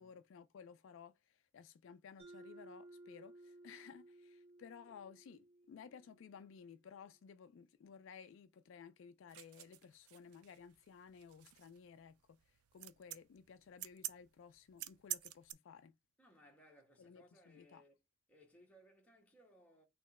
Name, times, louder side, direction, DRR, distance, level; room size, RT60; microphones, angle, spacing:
voice 1, 0.0-12.1 12.7-15.9 17.0-17.8, left 6 dB, 60° left, 0.3 m, -57 dB
Mallet percussion, 2.2-6.8, right 2 dB, 50° right, 1.9 m, -59 dB
sound 1, 9.3-15.5, right 13 dB, 90° right, 0.4 m, -48 dB
voice 2, 16.2-18.0 18.3-19.8, equal, 5° left, 1.2 m, -65 dB
4.2 x 3.0 x 4.1 m
head